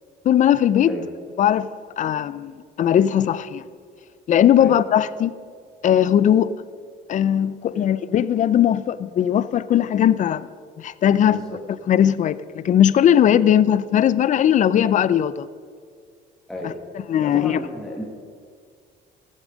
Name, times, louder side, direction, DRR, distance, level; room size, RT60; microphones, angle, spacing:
voice 1, 0.2-0.9 1.4-1.7 2.0-3.6 4.3-5.4 5.8-6.5 7.1-10.5 10.8-11.4 11.9-15.5 16.6-16.7 17.1-17.6, left 10 dB, 45° left, 0.5 m, -18 dB
voice 2, 17.2-18.0, left 1 dB, 5° left, 1.5 m, -33 dB
18.0 x 7.4 x 5.1 m
cardioid pair, 110°, 17 cm